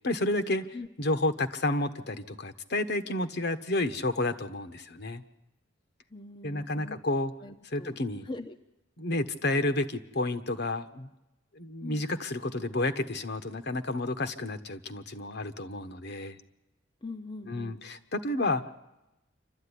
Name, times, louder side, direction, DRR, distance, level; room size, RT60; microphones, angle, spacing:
voice 1, 0.0-5.2 6.4-7.3 7.6-8.3 9.0-11.1 11.5-16.4 17.4-18.7, left 2 dB, 60° left, 10 dB, 1.2 m, -31 dB
voice 2, 6.1-7.0 7.4-7.9 8.3-8.5 11.8-12.0 17.0-17.8, left 2 dB, 25° left, 5 dB, 0.7 m, -41 dB
27.0 x 13.0 x 9.9 m, 0.97 s
head